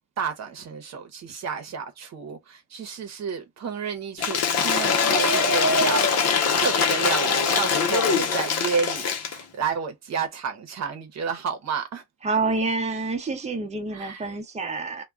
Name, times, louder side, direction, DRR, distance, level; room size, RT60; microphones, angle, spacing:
voice 1, 0.2-6.1 6.6-12.0 13.9-14.4, right 5 dB, 60° right, 0.8 m, -30 dB
Cheering / Applause / Crowd, 4.2-9.4, left 5 dB, 60° left, 0.7 m, -22 dB
voice 2, 12.2-15.0, right 3 dB, 20° right, 0.8 m, -27 dB
2.2 x 2.1 x 3.5 m
cardioid pair, 90°, 30 cm